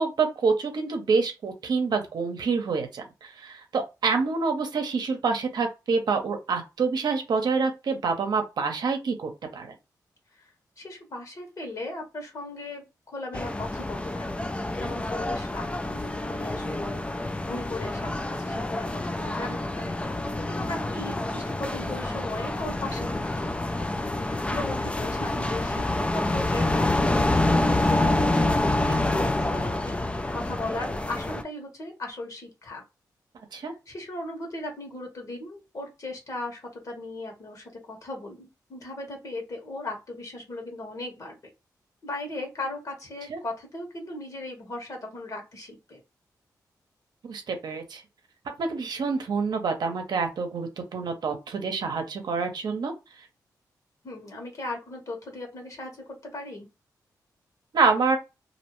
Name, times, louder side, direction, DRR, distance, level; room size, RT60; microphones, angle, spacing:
voice 1, 0.0-9.7 33.5-33.7 43.3-43.4 47.2-48.0 48.6-52.9 57.7-58.2, right 4 dB, 70° right, 0.7 m, -27 dB
voice 2, 10.8-14.3 14.8-20.0 20.5-23.7 24.2-28.3 28.6-30.0 30.3-32.8 33.6-41.4 42.0-46.0 54.0-56.7, left 2 dB, 50° left, 1.2 m, -37 dB
sound 1, 13.3-31.4, left 2 dB, 15° left, 0.3 m, -27 dB
2.6 x 2.1 x 3.0 m
cardioid pair, 65°, 7 cm